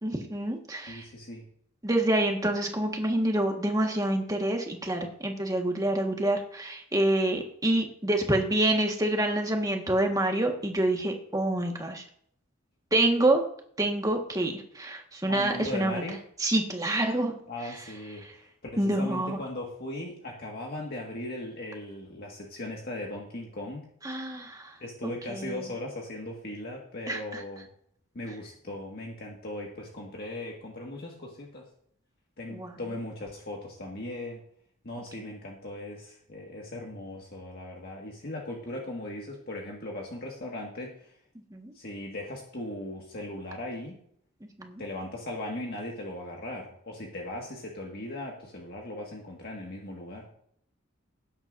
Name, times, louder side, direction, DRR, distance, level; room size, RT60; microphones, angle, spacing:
voice 1, 0.0-1.1 1.8-12.0 12.9-13.4 13.8-16.0 16.4-17.4 18.8-19.4 24.0-24.8 25.3-25.6 27.1-27.4 32.5-32.8 35.2-35.3 41.5-41.7 44.4-44.8, right 1 dB, 15° right, 2 dB, 1.6 m, -27 dB
voice 2, 0.9-1.5 15.3-16.2 17.5-23.9 24.8-27.7 28.1-31.7 32.4-34.4 34.8-41.2 41.7-44.0 44.8-50.3, left 1 dB, 50° left, -1 dB, 1.8 m, -38 dB
18.5 x 9.7 x 2.6 m, 0.66 s
head